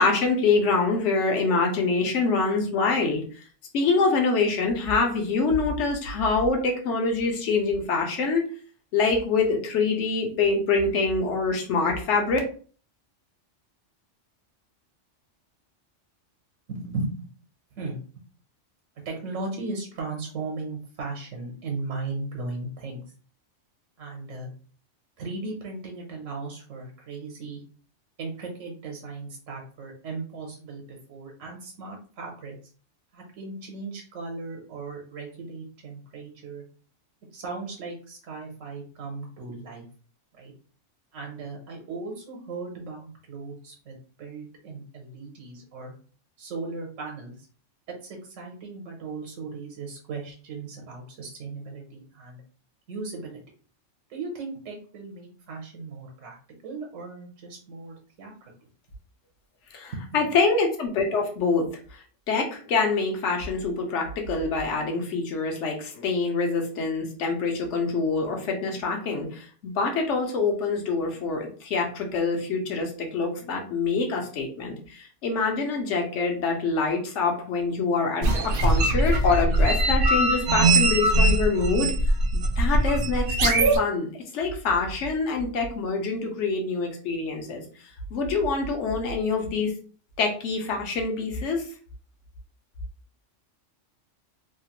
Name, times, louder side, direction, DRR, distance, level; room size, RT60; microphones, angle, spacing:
voice 1, 0.0-3.2 3.7-8.5 8.9-12.4 59.7-62.0 62.3-81.9 82.3-87.6 88.1-89.7 90.2-91.6, left 4 dB, 70° left, 2 dB, 1.1 m, -25 dB
voice 2, 16.7-17.3 17.8-18.0 19.0-23.0 24.0-24.5 25.2-27.6 28.2-32.6 33.1-36.6 37.3-39.9 40.4-40.5 41.1-45.9 46.4-47.3 47.9-52.4 52.9-53.4 54.1-56.4 56.6-58.5 59.9-60.4, right 3 dB, 80° right, 0 dB, 1.2 m, -37 dB
sound 1, 78.2-83.8, right 2 dB, 60° right, 0.6 m, -21 dB
3.0 x 2.4 x 2.9 m, 0.40 s
omnidirectional pair, 1.3 m